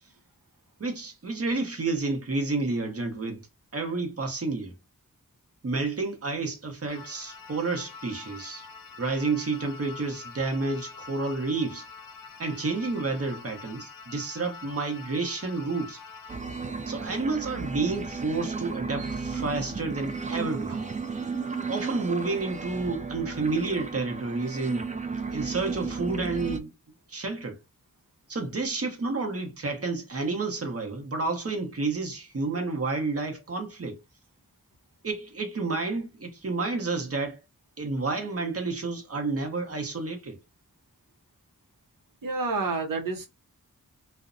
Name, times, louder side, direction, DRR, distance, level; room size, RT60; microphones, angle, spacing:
voice 1, 0.8-3.5 3.7-4.7 5.6-8.7 9.0-11.9 12.4-16.0 16.9-20.9 21.7-24.9 25.3-26.7 27.1-27.6 28.3-34.0 35.0-37.4 37.8-40.4, right 3 dB, 45° right, 0.8 m, -30 dB
sound 1, 6.9-16.4, left 5 dB, 80° left, 0.5 m, -45 dB
sound 2, 16.3-26.6, right 4 dB, 25° right, 0.4 m, -34 dB
voice 2, 42.2-43.3, right 3 dB, 75° right, 0.7 m, -29 dB
2.5 x 2.1 x 2.5 m
wide cardioid pair, 50°, 33 cm